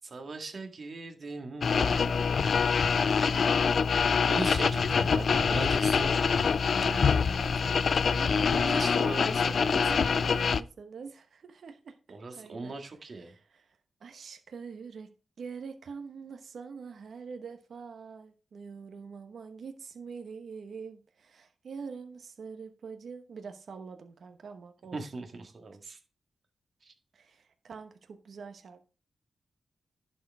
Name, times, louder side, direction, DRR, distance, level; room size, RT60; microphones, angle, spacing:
voice 1, 0.0-2.1 4.3-6.9 8.3-10.1 12.1-13.3 24.9-26.0 26.8-26.9, right 3 dB, 55° right, 1.9 m, -39 dB
sound 1, 1.6-10.6, left 5 dB, 65° left, 0.4 m, -25 dB
voice 2, 6.7-12.7 13.3-25.0 27.1-28.8, right 5 dB, 70° right, 1.1 m, -44 dB
11.0 x 4.7 x 4.7 m
cardioid pair, 85°, 0 cm